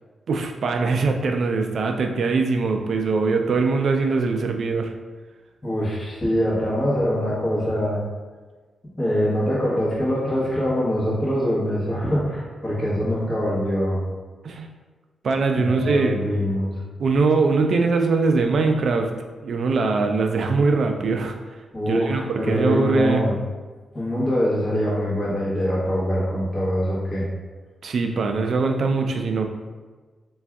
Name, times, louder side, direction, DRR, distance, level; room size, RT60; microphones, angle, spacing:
voice 1, 0.3-4.9 14.4-14.7 15.2-16.1 17.0-19.1 19.4-21.4 21.9-23.2 27.8-29.5, right 4 dB, 60° right, 5 dB, 0.3 m, -22 dB
voice 2, 5.6-8.0 9.0-14.0 15.5-16.7 21.7-23.4 23.9-27.2, equal, 20° left, -8 dB, 1.1 m, -23 dB
2.6 x 2.3 x 3.4 m, 1.4 s
cardioid pair, 115°, 0 cm